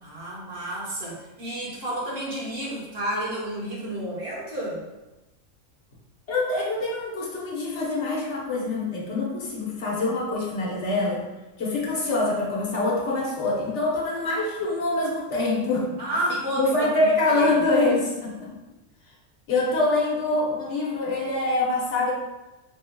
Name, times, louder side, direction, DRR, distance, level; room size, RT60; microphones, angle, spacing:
voice 1, 0.0-4.9 16.0-17.5, right 1 dB, 50° right, -6 dB, 1.4 m, -31 dB
voice 2, 6.3-11.3 11.6-15.9 16.6-18.5 19.5-22.1, left 2 dB, 65° left, -4 dB, 1.3 m, -25 dB
3.9 x 3.6 x 2.2 m, 1.0 s
omnidirectional pair, 1.3 m